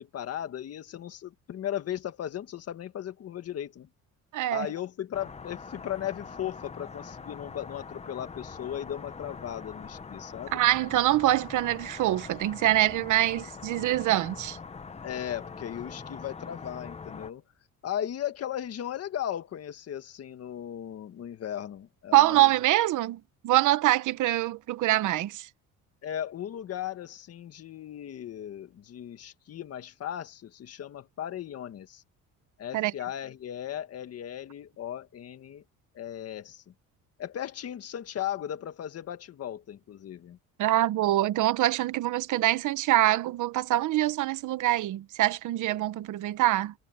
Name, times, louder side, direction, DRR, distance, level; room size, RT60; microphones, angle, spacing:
voice 1, 0.0-3.9 4.5-10.6 15.0-17.4 17.8-22.5 26.0-32.0 32.6-35.6 35.9-36.7 37.2-40.4, left 10 dB, 50° left, 1.7 m, -37 dB
voice 2, 4.3-4.7 10.5-14.6 22.1-25.5 32.7-32.9 40.6-46.7, right 15 dB, 70° right, 1.1 m, -24 dB
sound 1, 5.1-17.3, left 5 dB, 20° left, 1.1 m, -43 dB
cardioid pair, 135°, 32 cm